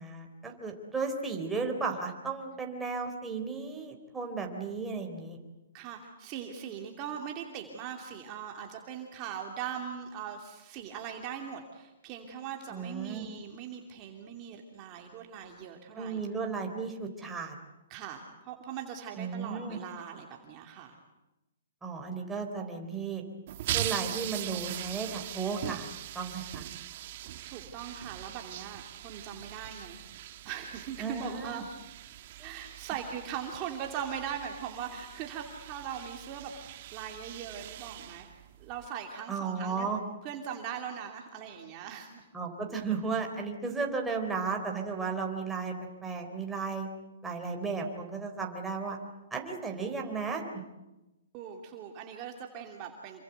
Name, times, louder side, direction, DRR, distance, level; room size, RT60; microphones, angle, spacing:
voice 1, 0.0-5.4 12.7-13.3 15.9-17.6 19.2-19.8 21.8-23.2 23.7-25.9 26.1-26.7 31.0-31.6 32.4-32.5 39.3-40.0 42.3-45.7 46.0-46.9 47.2-49.0 49.3-50.4, right 4 dB, 5° right, 1 dB, 3.8 m, -34 dB
voice 2, 5.7-16.2 17.9-21.0 27.4-30.0 30.4-31.7 32.4-39.9 40.2-42.3 51.3-53.2, right 8 dB, 25° right, 2 dB, 2.7 m, -40 dB
sound 1, 23.5-38.9, right 13 dB, 40° right, 1.4 m, -41 dB
27.5 x 24.5 x 8.1 m, 0.99 s
hypercardioid pair, 160°, 0 cm